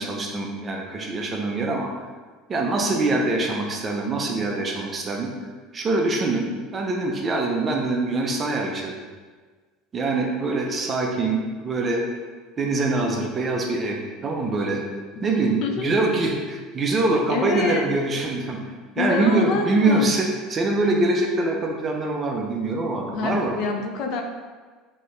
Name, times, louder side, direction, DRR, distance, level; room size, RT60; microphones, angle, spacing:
voice 1, 0.0-1.9 2.5-5.3 5.7-6.5 6.7-8.9 9.9-12.0 12.6-14.8 15.2-18.6 19.0-23.5, right 2 dB, 20° right, 0 dB, 0.5 m, -24 dB
voice 2, 15.6-15.9 17.3-17.9 18.9-20.1 23.1-24.2, left 4 dB, 50° left, 3 dB, 0.5 m, -26 dB
5.3 x 2.7 x 3.2 m, 1.4 s
cardioid pair, 170°, 0 cm